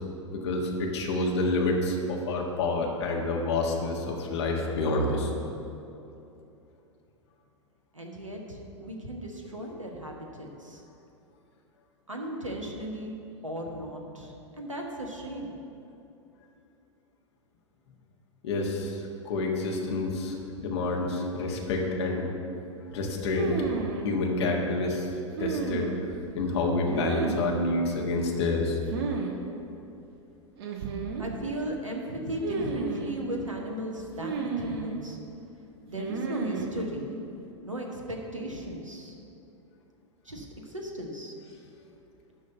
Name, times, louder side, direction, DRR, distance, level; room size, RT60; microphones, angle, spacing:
voice 1, 0.3-5.3 18.4-22.3 22.9-23.5 24.0-25.1 25.4-25.9 26.3-28.8, left 2 dB, 60° left, 0 dB, 1.5 m, -28 dB
voice 2, 7.9-10.8 12.1-13.2 13.4-15.6 31.2-35.2 35.8-37.2 37.6-39.1 40.2-41.3, right 1 dB, 90° right, 1 dB, 1.3 m, -36 dB
sound 1, 23.4-24.1 25.4-26.2 26.9-27.6 28.9-29.3 29.6-29.7 30.6-31.3 32.4-33.2 34.2-35.0 36.0-36.7, right 5 dB, 55° right, 1.2 m, -32 dB
12.0 x 4.1 x 7.7 m, 2.8 s
figure-of-eight pair, 95°, 16 cm